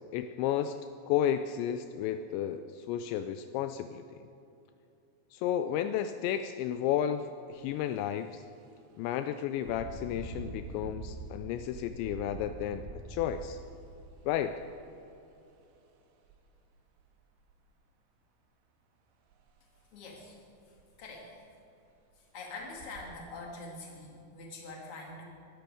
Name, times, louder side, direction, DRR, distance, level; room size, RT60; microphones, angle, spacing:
voice 1, 0.1-0.8 1.1-4.2 5.3-8.4 9.0-13.6 14.3-14.6, left 10 dB, 90° left, 9 dB, 2.5 m, -32 dB
Engine, 7.5-7.7 8.2-8.4 9.6-15.4 16.2-16.4 16.8-17.5 19.3-19.4 19.8-19.9 20.4-20.5 20.8-21.3 21.9-22.0 22.6-23.0, right 4 dB, 75° right, 3.7 m, -45 dB
voice 2, 19.9-20.4 20.7-21.3 22.2-25.2, left 3 dB, 35° left, -1 dB, 2.7 m, -45 dB
22.0 x 12.0 x 5.0 m, 2.8 s
omnidirectional pair, 5.7 m